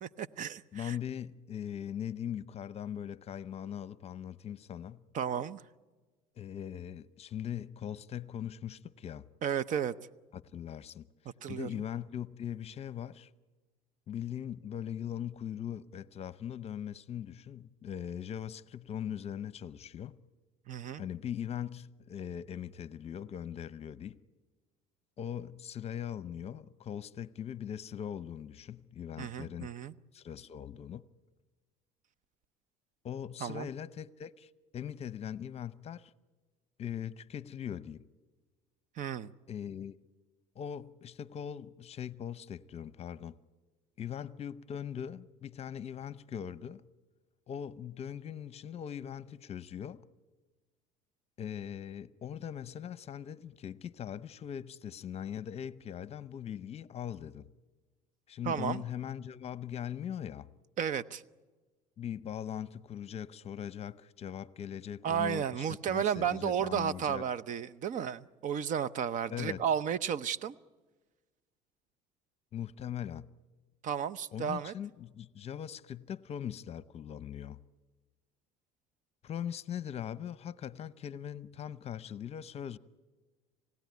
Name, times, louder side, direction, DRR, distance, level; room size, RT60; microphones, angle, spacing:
voice 1, 0.0-1.0 5.1-5.6 9.4-9.9 11.4-11.7 20.7-21.0 29.2-29.9 33.4-33.7 39.0-39.3 58.4-58.8 60.8-61.2 65.0-70.5 73.8-74.7, right 8 dB, 50° right, 0.8 m, -33 dB
voice 2, 0.7-5.0 6.4-9.3 10.3-11.1 11.5-13.3 14.1-20.2 21.0-24.2 25.2-29.7 30.1-31.1 33.0-36.1 36.8-38.1 39.5-40.0 40.5-43.4 44.0-46.8 47.5-50.0 51.4-57.5 58.3-60.5 62.0-67.3 69.3-69.6 72.5-73.3 74.3-77.6 79.2-82.8, left 9 dB, 40° left, 0.8 m, -40 dB
27.5 x 16.5 x 9.5 m
supercardioid pair, 100°, 17 cm